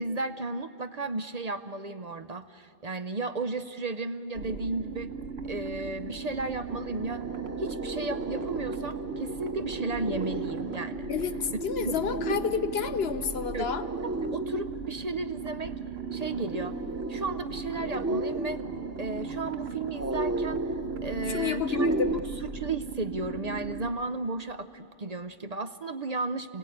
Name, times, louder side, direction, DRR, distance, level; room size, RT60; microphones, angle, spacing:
voice 1, 0.0-5.1 5.4-7.2 7.6-11.1 11.8-12.0 13.5-13.7 14.3-15.7 16.1-16.8 17.1-18.6 19.0-20.6 21.0-21.9 22.1-22.2 22.5-26.6, right 3 dB, 45° right, 9 dB, 0.7 m, -34 dB
sound 1, 4.3-23.9, right 5 dB, 80° right, 1.2 m, -38 dB
sound 2, 5.6-5.7 6.0-22.2, right 2 dB, 25° right, 0.3 m, -35 dB
voice 2, 11.1-13.8 21.3-22.1, left 6 dB, 75° left, 11 dB, 1.1 m, -30 dB
28.0 x 17.5 x 8.6 m, 2.6 s
omnidirectional pair, 1.1 m